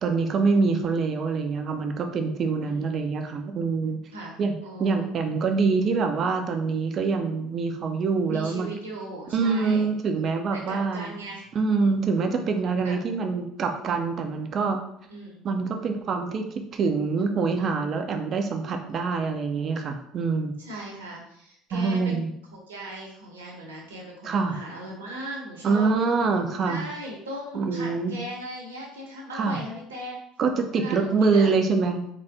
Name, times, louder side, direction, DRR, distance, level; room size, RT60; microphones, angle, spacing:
voice 1, 0.0-4.0 4.4-8.7 9.3-11.2 11.5-14.8 15.4-20.5 21.7-22.3 24.2-24.6 25.6-26.8 27.5-28.1 29.3-29.6 30.4-32.1, right 4 dB, 40° right, 5 dB, 0.6 m, -25 dB
voice 2, 2.6-3.1 4.1-5.1 8.3-10.0 10.5-11.5 12.8-13.0 15.1-15.4 20.6-22.2 22.5-25.9 26.6-30.2 30.7-31.5, right 1 dB, 75° right, -1 dB, 1.0 m, -38 dB
3.9 x 3.2 x 3.5 m, 0.71 s
figure-of-eight pair, 60°, 0 cm